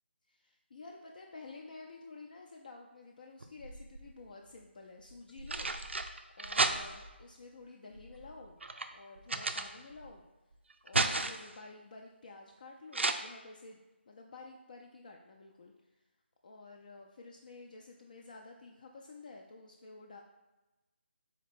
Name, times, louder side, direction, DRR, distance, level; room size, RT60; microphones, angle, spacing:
voice 1, 0.3-5.7 6.4-8.6 8.9-10.3 10.8-16.0 16.4-20.2, left 3 dB, 45° left, 0 dB, 0.4 m, -51 dB
sound 1, 3.4-4.2 5.1-7.2 7.9-10.1 10.5-11.6 12.9-13.1, right 3 dB, 75° right, 0.4 m, -34 dB
4.1 x 2.9 x 4.2 m, 1.1 s
figure-of-eight pair, 155°, 6 cm